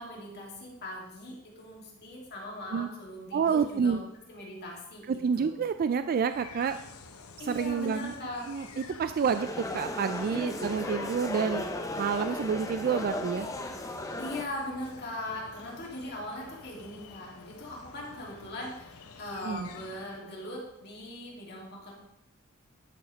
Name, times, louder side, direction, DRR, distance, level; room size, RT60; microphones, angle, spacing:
voice 1, 0.0-3.9 4.3-5.5 7.4-8.5 10.3-10.6 14.2-21.9, left 1 dB, 50° left, -2 dB, 2.6 m, -40 dB
voice 2, 3.3-4.0 5.1-6.7 7.4-8.1 8.5-11.6 12.0-13.5 19.4-19.7, right 6 dB, 40° right, 10 dB, 0.3 m, -28 dB
sound 1, 6.1-20.4, left 4 dB, 70° left, 0.8 m, -49 dB
sound 2, 9.3-14.4, left 2 dB, 15° left, 0.6 m, -36 dB
11.5 x 4.9 x 5.1 m, 0.85 s
head